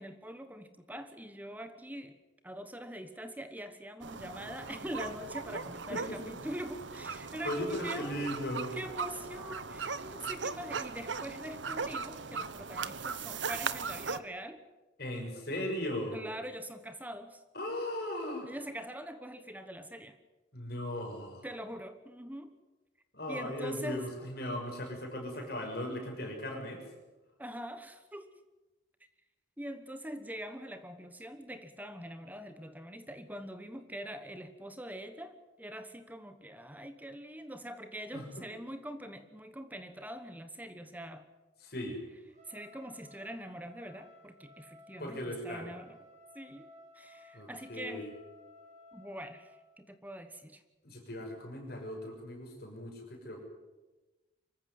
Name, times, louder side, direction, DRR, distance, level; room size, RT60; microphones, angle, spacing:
voice 1, 0.0-2.1 2.4-8.3 8.7-14.6 16.1-17.4 18.4-20.2 21.4-22.5 23.3-24.2 25.3-25.5 27.4-28.3 29.6-41.3 42.5-46.0 46.3-48.1 48.9-50.6, equal, 10° right, 10 dB, 1.1 m, -43 dB
sound 1, 4.0-14.2, right 5 dB, 80° right, 1.1 m, -39 dB
voice 2, 7.4-8.7 15.0-16.2 17.5-18.5 20.5-21.5 23.1-26.8 38.1-38.4 41.6-42.0 45.0-45.7 47.3-48.1 50.8-53.4, left 1 dB, 55° left, 2 dB, 6.4 m, -38 dB
Trumpet, 42.3-49.6, left 2 dB, 40° right, 4.9 m, -57 dB
25.0 x 15.0 x 9.5 m, 1.1 s
head